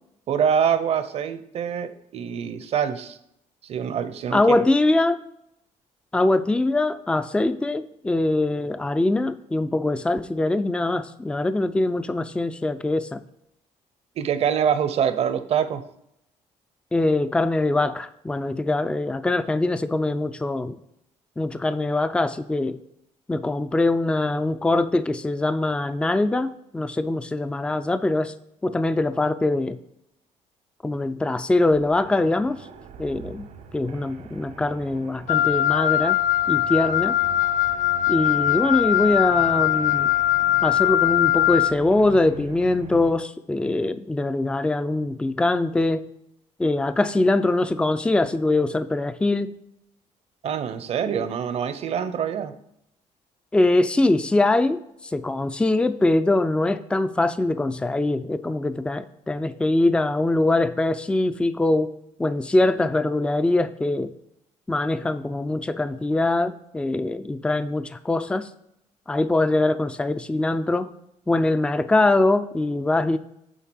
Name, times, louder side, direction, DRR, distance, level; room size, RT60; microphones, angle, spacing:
voice 1, 0.3-3.2 3.7-4.6 14.2-15.8 50.4-52.5, right 8 dB, 55° right, 11 dB, 0.8 m, -25 dB
voice 2, 4.3-5.2 6.1-13.2 16.9-20.8 21.4-22.8 23.3-28.3 28.6-29.8 30.8-32.6 33.0-33.5 33.7-36.2 36.5-37.2 38.1-40.1 40.6-46.1 46.6-49.5 51.1-51.2 53.5-61.9 62.2-64.1 64.7-68.5 69.1-70.9 71.3-73.2, left 2 dB, 10° left, 12 dB, 0.4 m, -23 dB
sound 1, 31.7-43.1, right 7 dB, 70° right, 1.2 m, -42 dB
Wind instrument woodwind instrument, 35.3-41.7, left 13 dB, 85° left, 0.4 m, -21 dB
9.2 x 3.8 x 6.2 m, 0.77 s
cardioid pair, 120°, 13 cm